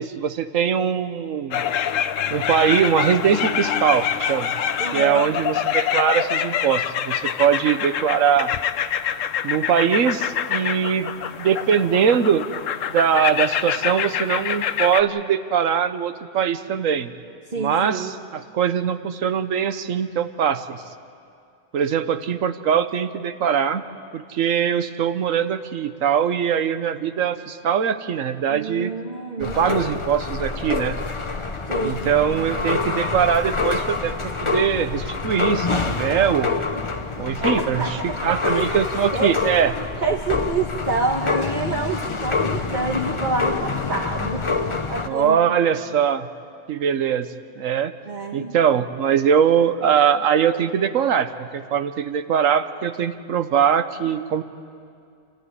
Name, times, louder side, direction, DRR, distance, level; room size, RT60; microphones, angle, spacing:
voice 1, 0.0-1.6 2.3-4.5 4.9-8.5 9.4-11.1 11.4-12.5 12.9-17.1 17.6-20.8 21.7-23.8 24.1-28.9 29.4-31.0 31.8-36.6 37.2-39.7 45.1-46.3 46.7-47.3 47.6-47.9 48.3-54.4, right 8 dB, 85° right, 11 dB, 1.3 m, -21 dB
sound 1, 1.5-15.0, left 9 dB, 80° left, 1.1 m, -25 dB
voice 2, 4.8-5.4 17.5-18.1 28.5-29.6 31.7-32.0 32.3-32.6 37.4-38.7 39.1-39.4 39.6-45.4 48.1-48.5, right 3 dB, 40° right, 0 dB, 1.5 m, -27 dB
sound 2, 29.4-45.1, left 4 dB, 25° left, 0.9 m, -26 dB
29.0 x 13.5 x 9.8 m, 2.4 s
omnidirectional pair, 1.3 m